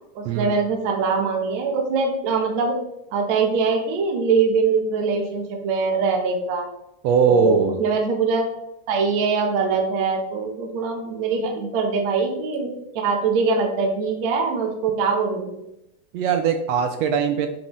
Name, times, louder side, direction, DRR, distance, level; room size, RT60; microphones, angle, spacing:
voice 1, 0.2-2.8 3.1-6.7 7.3-8.5 8.9-15.5, right 4 dB, 70° right, 1 dB, 2.2 m, -23 dB
voice 2, 7.0-7.8 16.1-17.5, right 6 dB, 85° right, 6 dB, 1.5 m, -20 dB
9.7 x 3.9 x 3.1 m, 0.86 s
omnidirectional pair, 3.5 m